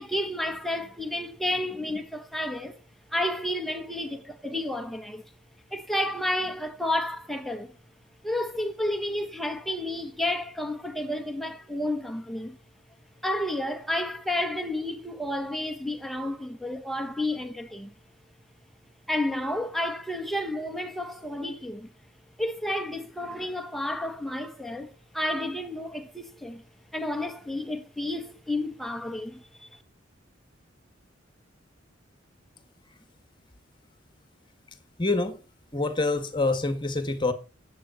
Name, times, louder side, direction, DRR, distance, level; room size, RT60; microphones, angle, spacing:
voice 1, 0.0-2.8 3.1-5.2 5.7-7.7 8.2-12.6 13.2-17.9 19.1-21.9 22.4-26.6 26.9-29.8, left 1 dB, ahead, 1.4 m, -31 dB
voice 2, 35.0-35.4 35.7-37.3, left 2 dB, 25° left, 1.8 m, -26 dB
10.0 x 8.8 x 5.7 m
head